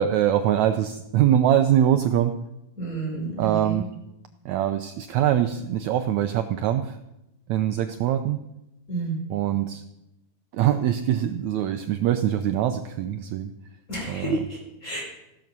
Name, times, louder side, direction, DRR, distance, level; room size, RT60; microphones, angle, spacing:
voice 1, 0.0-2.4 3.4-3.8 4.5-7.0 7.5-8.4 9.3-9.8 10.5-13.5 14.1-14.3, right 10 dB, 75° right, 8 dB, 1.8 m, -23 dB
voice 2, 2.8-3.8 8.9-9.2 13.9-15.0, right 2 dB, 25° left, -2 dB, 5.4 m, -30 dB
16.0 x 12.5 x 6.1 m, 0.90 s
omnidirectional pair, 3.8 m